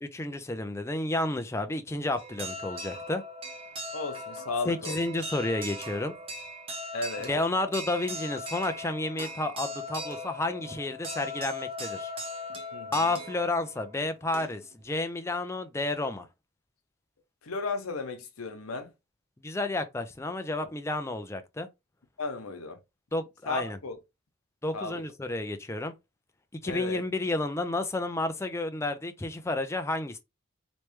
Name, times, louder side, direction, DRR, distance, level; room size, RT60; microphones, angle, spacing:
voice 1, 0.0-3.2 4.7-6.1 7.3-12.1 12.9-16.3 19.4-21.7 23.1-23.8 24.6-25.9 26.6-30.2, left 2 dB, 15° left, 0.4 m, -31 dB
sound 1, 2.2-14.8, left 1 dB, 25° right, 0.8 m, -39 dB
voice 2, 3.9-5.0 6.9-7.3 12.7-13.1 17.4-18.9 20.6-20.7 22.2-22.8 23.5-24.0 24.7-25.0 26.6-27.0, left 3 dB, 85° left, 0.9 m, -34 dB
3.2 x 3.0 x 3.1 m
head